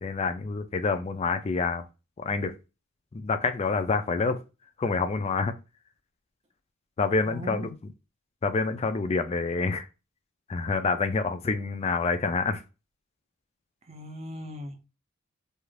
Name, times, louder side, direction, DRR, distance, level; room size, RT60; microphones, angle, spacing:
voice 1, 0.0-1.9 2.2-2.5 3.1-4.4 4.8-5.5 7.0-7.7 8.4-9.9 10.5-12.6, left 4 dB, 30° left, 0.3 m, -27 dB
voice 2, 7.3-7.7 13.8-14.9, equal, 30° right, 0.5 m, -39 dB
2.5 x 2.4 x 3.1 m
head